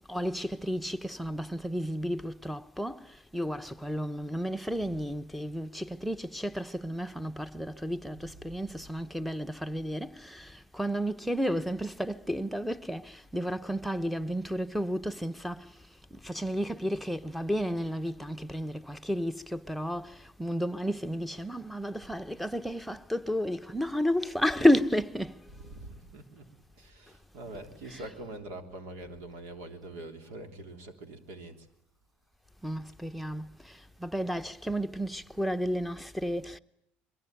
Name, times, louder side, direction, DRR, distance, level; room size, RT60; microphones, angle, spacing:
voice 1, 0.1-25.5 27.9-28.0 32.6-36.6, equal, ahead, 1.0 m, -32 dB
voice 2, 25.5-26.4 26.8-31.7, right 2 dB, 75° right, 3.4 m, -44 dB
22.5 x 22.0 x 9.2 m
supercardioid pair, 90°, 5 cm